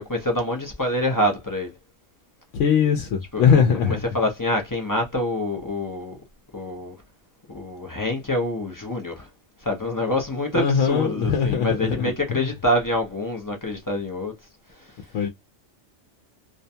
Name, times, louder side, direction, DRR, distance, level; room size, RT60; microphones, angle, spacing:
voice 1, 0.0-1.7 3.3-6.2 6.5-7.0 7.5-9.3 9.6-14.3 14.7-15.0, left 1 dB, 25° left, 0.5 m, -26 dB
voice 2, 2.5-4.0 10.5-12.4 15.1-15.3, left 7 dB, 90° left, 0.9 m, -21 dB
2.5 x 2.2 x 2.7 m
omnidirectional pair, 1.2 m